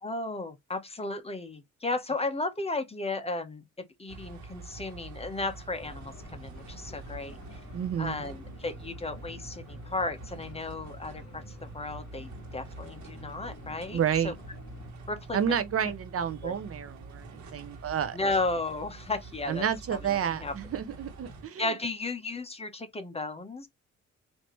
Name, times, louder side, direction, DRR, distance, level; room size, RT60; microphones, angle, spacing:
voice 1, 0.0-3.6 4.0-7.4 8.0-11.4 11.7-14.3 15.1-15.4 16.4-16.5 18.1-19.6 20.3-20.5 21.6-23.7, left 2 dB, 20° left, 1.0 m, -34 dB
sound 1, 4.1-21.5, right 3 dB, 70° right, 1.5 m, -46 dB
sound 2, 5.8-14.9, left 2 dB, 55° left, 2.0 m, -49 dB
voice 2, 7.7-8.2 13.9-14.4 15.3-18.2 19.5-21.7, right 8 dB, 50° right, 0.7 m, -30 dB
4.5 x 2.8 x 3.1 m
cardioid pair, 90°, 30 cm